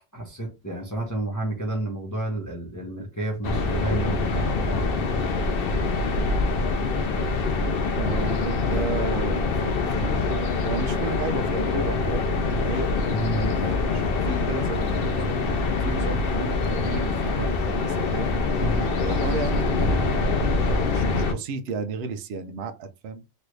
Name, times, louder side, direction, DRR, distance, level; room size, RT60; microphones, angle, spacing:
voice 1, 0.1-5.0 13.1-13.6 18.6-18.9, right 2 dB, 15° left, 0.7 m, -30 dB
sound 1, 3.4-21.3, left 3 dB, 60° left, 0.6 m, -24 dB
voice 2, 7.9-12.2 12.6-12.9 13.6-18.4 19.0-23.2, right 4 dB, 60° right, 0.7 m, -33 dB
3.1 x 2.5 x 3.1 m
omnidirectional pair, 1.5 m